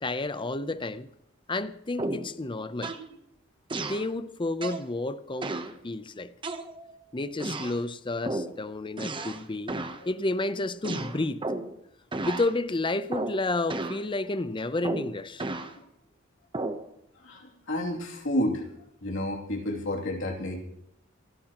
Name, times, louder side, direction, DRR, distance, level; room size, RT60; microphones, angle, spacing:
voice 1, 0.0-1.1 1.5-2.9 3.8-5.6 5.8-6.3 7.1-9.8 10.0-11.4 12.2-15.4, left 2 dB, 25° left, 0.7 m, -31 dB
sound 1, 2.0-2.3 2.8-3.1 3.7-4.1 4.6-4.9 5.4-5.7 6.4-7.0 7.4-7.8 8.2-8.6 9.0-9.4 9.7-10.0 10.8-11.8 12.1-12.5 13.1-13.4 13.7-14.0 14.8-15.7 16.5-16.8, right 2 dB, 25° right, 0.9 m, -33 dB
voice 2, 17.2-18.6 19.0-20.6, left 1 dB, 70° left, 2.8 m, -30 dB
28.5 x 12.0 x 3.0 m
head